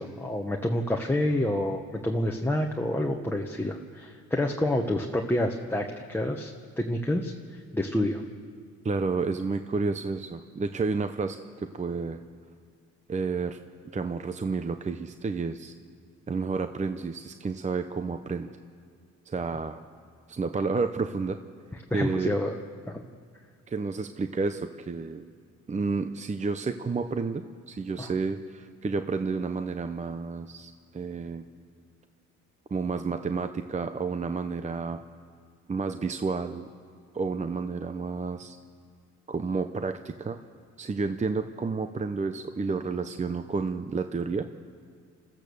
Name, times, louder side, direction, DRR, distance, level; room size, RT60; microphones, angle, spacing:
voice 1, 0.0-8.2 21.9-22.5 22.9-23.0 28.0-28.1, left 1 dB, 5° left, 0 dB, 1.2 m, -28 dB
voice 2, 8.8-12.2 13.1-13.6 13.9-15.7 16.3-18.5 19.3-19.8 20.3-21.4 21.9-22.4 23.7-25.3 25.7-31.4 32.7-35.0 35.7-36.7 37.1-38.6 39.3-40.4 40.8-44.5, right 4 dB, 25° right, 9 dB, 0.7 m, -30 dB
26.0 x 14.5 x 7.0 m, 2.1 s
cardioid pair, 90°, 30 cm